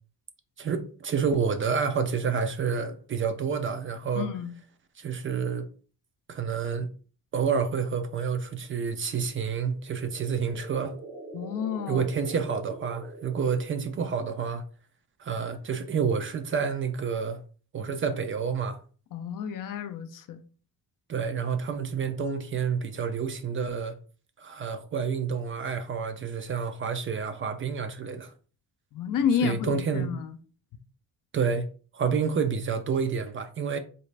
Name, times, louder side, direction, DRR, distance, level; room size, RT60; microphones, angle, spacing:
voice 1, 0.6-4.3 5.0-5.7 6.3-6.9 7.3-11.0 11.9-14.6 15.2-17.4 17.7-18.8 21.1-24.0 24.4-28.3 29.4-30.1 31.3-31.7 31.9-33.8, right 6 dB, 35° right, 0.4 m, -29 dB
voice 2, 4.2-4.5 11.3-12.0 19.1-20.4 28.9-30.4, left 7 dB, 60° left, 0.5 m, -30 dB
sound 1, 9.7-14.1, right 3 dB, 80° right, 1.6 m, -44 dB
4.0 x 2.4 x 3.2 m
cardioid pair, 140°, 37 cm